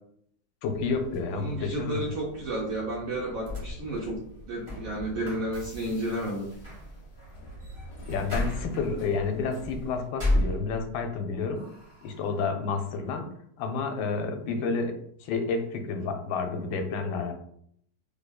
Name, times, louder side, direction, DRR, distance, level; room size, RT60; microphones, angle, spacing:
voice 1, 0.6-2.0 8.1-11.7 12.0-15.0 15.2-17.3, left 4 dB, 90° left, 5 dB, 1.3 m, -30 dB
sound 1, 0.7-10.1, right 1 dB, 65° left, 1.2 m, -46 dB
voice 2, 1.3-4.2 4.5-6.5 14.5-14.7, right 1 dB, 65° right, -2 dB, 0.9 m, -32 dB
sound 2, 3.5-11.1 11.5-12.3, left 1 dB, 20° right, 1.0 m, -34 dB
3.6 x 3.3 x 2.3 m, 0.67 s
omnidirectional pair, 2.0 m